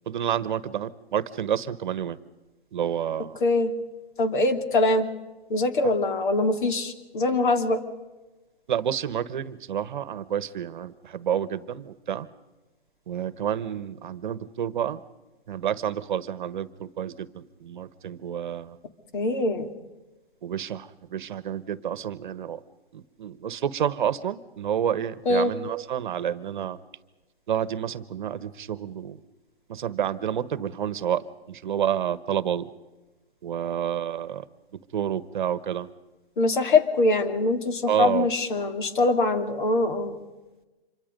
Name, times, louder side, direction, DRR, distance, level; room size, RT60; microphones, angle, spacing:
voice 1, 0.1-2.2 2.7-3.4 8.7-12.3 13.1-15.0 15.5-18.8 20.4-22.6 22.9-26.8 27.5-29.2 29.7-32.7 33.4-34.4 34.7-35.9 37.9-38.3, right 9 dB, 50° right, 17 dB, 1.2 m, -29 dB
voice 2, 3.4-3.7 4.2-5.1 5.5-7.8 19.1-19.7 25.3-25.5 36.4-40.2, left 2 dB, 50° left, 8 dB, 2.7 m, -23 dB
26.5 x 23.5 x 5.3 m, 1.2 s
hypercardioid pair, 150°, 31 cm